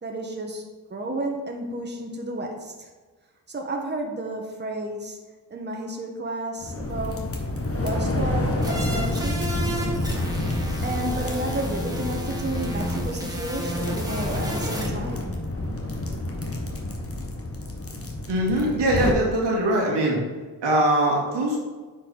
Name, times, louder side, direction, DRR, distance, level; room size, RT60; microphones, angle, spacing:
voice 1, 0.0-0.6 0.9-2.9 3.5-5.2 5.5-7.3 7.7-9.5 10.8-15.3, right 1 dB, 25° right, 1 dB, 1.4 m, -32 dB
sound 1, 6.6-19.1, left 1 dB, 35° left, 1.4 m, -29 dB
sound 2, 8.6-14.9, right 1 dB, 10° right, 1.8 m, -33 dB
voice 2, 18.3-20.2 20.6-21.6, right 1 dB, 85° right, -3 dB, 2.2 m, -22 dB
9.1 x 4.7 x 4.0 m, 1.3 s
cardioid pair, 70°, 42 cm